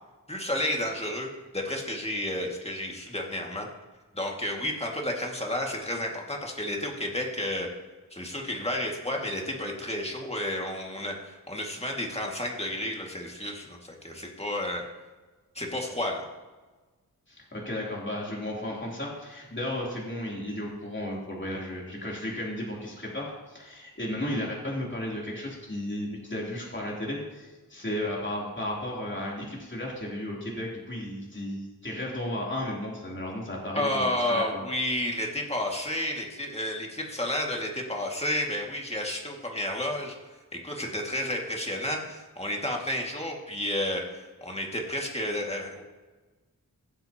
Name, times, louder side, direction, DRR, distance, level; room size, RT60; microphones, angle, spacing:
voice 1, 0.3-1.3 1.5-3.7 4.1-7.7 8.1-14.8 15.6-16.3 33.7-40.2 40.5-45.8, left 1 dB, 15° left, 0 dB, 2.1 m, -31 dB
voice 2, 17.3-34.6, left 1 dB, 35° left, -4 dB, 3.3 m, -34 dB
17.0 x 7.9 x 2.9 m, 1.3 s
wide cardioid pair, 65°, 35 cm